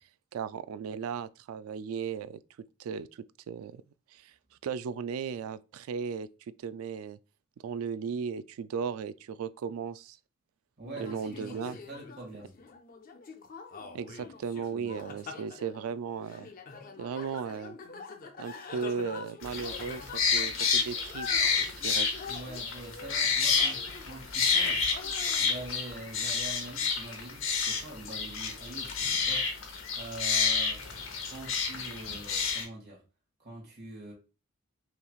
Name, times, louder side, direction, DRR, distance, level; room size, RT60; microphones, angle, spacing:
voice 1, 0.3-2.4 2.8-3.8 4.1-4.3 4.6-6.3 6.6-7.2 7.6-10.2 11.0-11.8 13.9-16.5 17.0-17.8 18.4-21.3 21.6-22.1, right 6 dB, 80° right, 0.3 m, -36 dB
sound 1, 10.8-24.3 24.6-25.5, left 4 dB, 40° left, 0.5 m, -45 dB
voice 2, 10.8-12.5 14.2-14.3 14.7-15.0 22.3-24.9 25.4-29.5 29.9-30.8 31.3-33.0 33.4-34.1, right 2 dB, 50° right, 1.9 m, -44 dB
sound 2, 19.4-32.6, left 5 dB, 65° left, 0.9 m, -29 dB
5.6 x 3.1 x 2.4 m
head